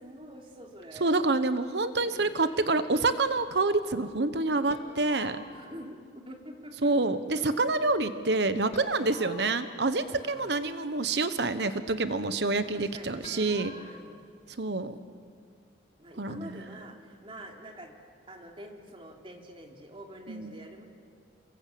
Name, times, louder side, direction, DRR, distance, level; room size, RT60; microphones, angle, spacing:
voice 1, 0.0-1.1 2.0-2.3 5.5-6.9 10.2-10.6 12.7-14.2 16.0-17.9 18.3-20.8, right 1 dB, 30° right, 2 dB, 3.1 m, -47 dB
voice 2, 1.0-5.4 6.8-13.7 14.6-15.0 16.2-16.6 20.3-20.5, right 3 dB, 70° right, 11 dB, 1.1 m, -27 dB
sound 1, 4.7-6.0 8.7-10.6 13.2-14.0, left 2 dB, 35° left, 2.1 m, -48 dB
28.5 x 21.5 x 8.6 m, 2.2 s
head